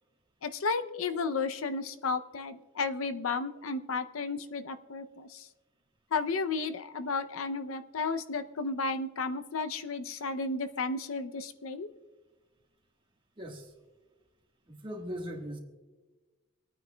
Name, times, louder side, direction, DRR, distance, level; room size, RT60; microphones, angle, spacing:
voice 1, 0.4-5.5 6.1-11.9, left 4 dB, 75° left, 10 dB, 0.6 m, -33 dB
voice 2, 13.4-13.7 14.7-15.6, equal, 25° right, 1 dB, 1.5 m, -39 dB
27.0 x 9.4 x 2.2 m, 1.2 s
head